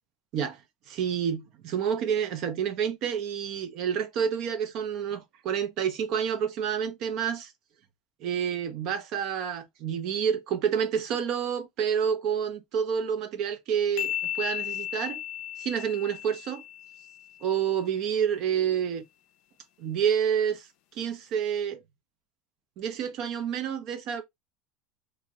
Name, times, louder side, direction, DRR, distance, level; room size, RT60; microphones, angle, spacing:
voice 1, 0.9-7.5 8.2-15.2 15.6-16.6 17.4-19.0 19.8-21.8 22.8-24.2, right 8 dB, 45° right, 0.4 m, -29 dB
sound 1, 14.0-17.5, left 11 dB, 55° left, 0.3 m, -35 dB
2.6 x 2.0 x 3.3 m
supercardioid pair, 160°, 0 cm